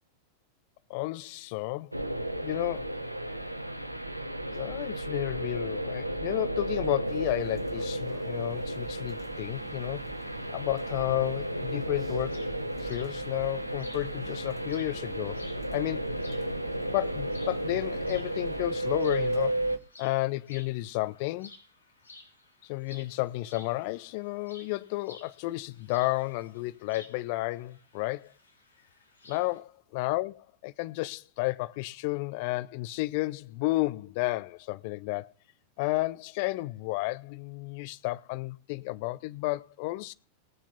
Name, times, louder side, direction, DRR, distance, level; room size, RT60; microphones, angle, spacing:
voice 1, 0.9-1.9 2.4-2.9 4.5-10.1 10.5-12.5 12.8-15.4 15.7-16.1 16.9-19.6 20.0-21.5 22.6-28.3 29.3-35.3 35.8-40.1, left 20 dB, 45° left, 0.7 m, -32 dB
sound 1, 1.9-19.8, right 1 dB, 90° right, 0.9 m, -33 dB
sound 2, 7.0-19.8, right 6 dB, 30° right, 2.6 m, -51 dB
sound 3, 12.2-29.6, left 2 dB, 75° left, 3.6 m, -55 dB
19.5 x 7.2 x 5.6 m
figure-of-eight pair, 90°, 0 cm